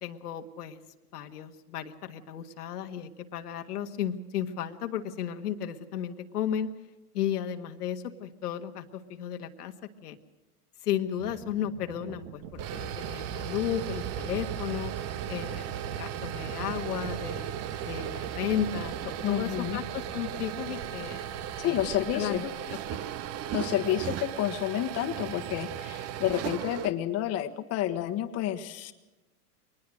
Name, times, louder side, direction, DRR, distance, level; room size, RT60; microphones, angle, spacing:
voice 1, 0.0-0.8 1.1-6.7 7.1-9.7 10.0-10.2 10.8-14.9 15.3-15.6 15.9-17.5 17.8-21.2 21.7-21.9 22.1-23.0, left 9 dB, 90° left, 5 dB, 1.7 m, -34 dB
sound 1, 11.2-21.5, right 7 dB, 50° right, 2.3 m, -46 dB
sound 2, 12.4-26.9, right 10 dB, 35° right, 0.9 m, -36 dB
voice 2, 19.2-19.8 21.6-22.4 23.5-28.9, left 12 dB, 35° left, 7 dB, 1.4 m, -30 dB
23.5 x 20.0 x 6.4 m, 1.1 s
supercardioid pair, 130°, 45 cm